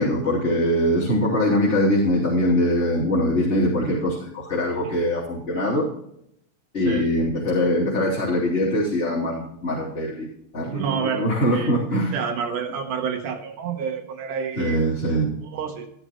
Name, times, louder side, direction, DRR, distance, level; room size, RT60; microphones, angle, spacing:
voice 1, 0.0-5.9 6.7-12.1 14.6-15.3, equal, 20° left, -10 dB, 3.5 m, -22 dB
voice 2, 10.7-11.7 12.1-14.8 15.4-15.9, right 7 dB, 85° right, 4 dB, 2.6 m, -29 dB
12.5 x 11.5 x 3.0 m, 0.74 s
omnidirectional pair, 3.5 m